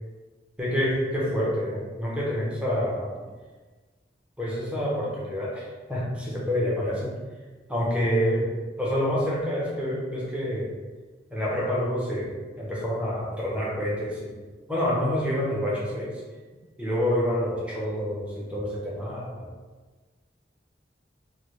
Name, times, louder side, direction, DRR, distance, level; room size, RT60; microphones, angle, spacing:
voice 1, 0.6-3.2 4.4-7.2 7.7-8.5 8.8-10.7 11.3-14.3 14.7-16.2 16.8-19.5, equal, 5° right, -6 dB, 0.7 m, -27 dB
3.2 x 2.3 x 3.0 m, 1.3 s
head